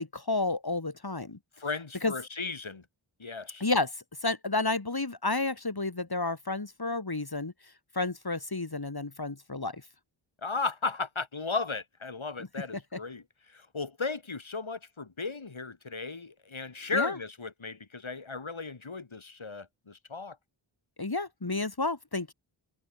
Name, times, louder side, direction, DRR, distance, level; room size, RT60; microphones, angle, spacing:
voice 1, 0.0-1.4 2.0-2.1 3.6-7.5 7.9-9.8 12.9-13.0 16.9-17.2 21.0-22.3, left 3 dB, 50° left, 7.8 m, -31 dB
voice 2, 1.6-2.9 3.2-3.6 10.4-20.4, left 4 dB, 70° left, 6.8 m, -35 dB
wide cardioid pair, 70°, 49 cm